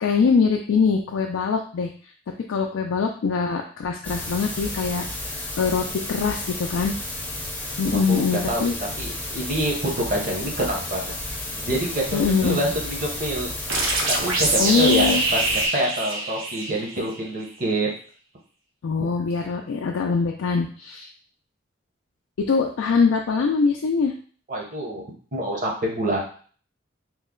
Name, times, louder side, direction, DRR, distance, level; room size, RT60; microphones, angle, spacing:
voice 1, 0.0-1.9 2.5-6.9 7.8-8.7 12.1-12.6 14.6-15.2 18.8-21.1 22.4-24.1, left 5 dB, 80° left, 1 dB, 0.3 m, -23 dB
sound 1, 4.0-15.7, left 2 dB, 10° left, 0.6 m, -32 dB
voice 2, 7.9-8.6 9.0-11.0 11.5-13.5 14.1-17.9 19.0-19.1 24.5-25.0 25.3-26.2, right 1 dB, 40° right, -1 dB, 0.9 m, -26 dB
sound 2, 13.7-17.2, right 2 dB, 90° right, 0.8 m, -24 dB
3.0 x 2.1 x 3.6 m, 0.44 s
head